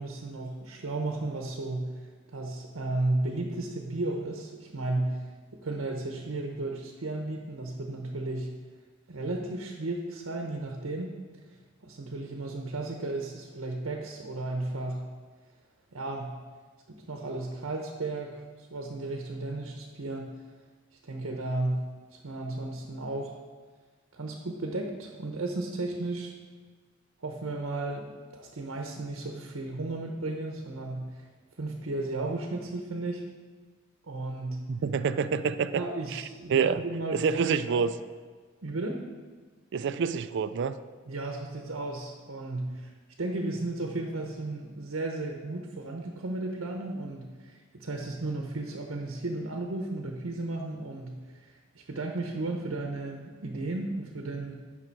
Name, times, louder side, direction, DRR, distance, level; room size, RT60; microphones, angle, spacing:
voice 1, 0.0-2.0 2.3-5.2 5.6-8.5 9.1-11.2 11.8-15.0 15.9-16.3 16.9-20.3 21.0-21.8 22.1-23.3 24.1-26.3 27.2-31.3 31.6-33.2 34.1-34.6 35.7-37.8 38.6-39.0 41.1-42.9 43.2-54.6, right 2 dB, 75° right, 3 dB, 0.9 m, -34 dB
voice 2, 34.7-35.8 36.1-36.2 36.5-36.8 37.1-37.9 39.7-40.7, right 6 dB, 60° right, 13 dB, 0.4 m, -27 dB
8.6 x 6.1 x 4.6 m, 1.4 s
head